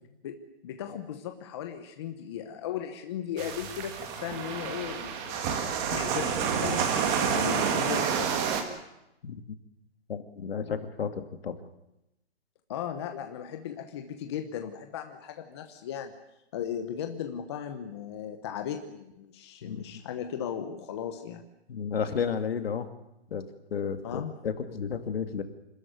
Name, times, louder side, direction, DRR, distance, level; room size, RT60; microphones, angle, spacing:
voice 1, 0.6-5.6 5.9-6.4 6.6-8.3 12.7-16.1 16.5-21.4 24.0-24.3, left 9 dB, 25° left, 6 dB, 1.1 m, -36 dB
sound 1, 3.4-8.6, right 7 dB, 15° right, 1.6 m, -29 dB
voice 2, 10.1-11.5 19.6-19.8 21.7-22.9 23.3-25.4, left 6 dB, 60° left, 8 dB, 2.3 m, -32 dB
26.0 x 13.5 x 9.3 m, 0.87 s
hypercardioid pair, 170°, 33 cm